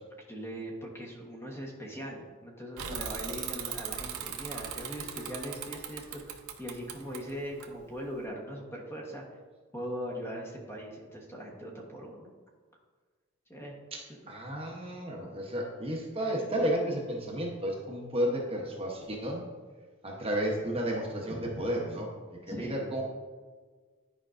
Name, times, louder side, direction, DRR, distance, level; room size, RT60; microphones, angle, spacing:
voice 1, 0.3-9.2 9.7-12.3 13.5-13.7 14.1-14.2 22.5-23.0, equal, 10° left, -1 dB, 1.0 m, -40 dB
Bicycle / Mechanisms, 2.8-8.2, right 8 dB, 80° right, 0.7 m, -39 dB
voice 2, 14.3-19.4 20.0-23.0, equal, 25° right, -1 dB, 0.8 m, -32 dB
10.5 x 5.2 x 2.5 m, 1.5 s
head